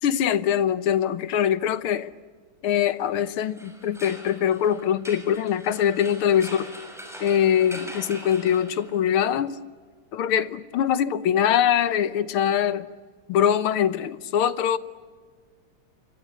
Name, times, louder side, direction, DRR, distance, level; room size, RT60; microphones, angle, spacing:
voice 1, 0.0-2.1 2.6-6.7 7.2-9.6 10.1-12.9 13.3-14.8, left 9 dB, 80° left, 14 dB, 1.9 m, -23 dB
sound 1, 3.5-9.2, equal, ahead, 6.5 m, -42 dB
28.5 x 25.0 x 8.4 m, 1.5 s
omnidirectional pair, 2.4 m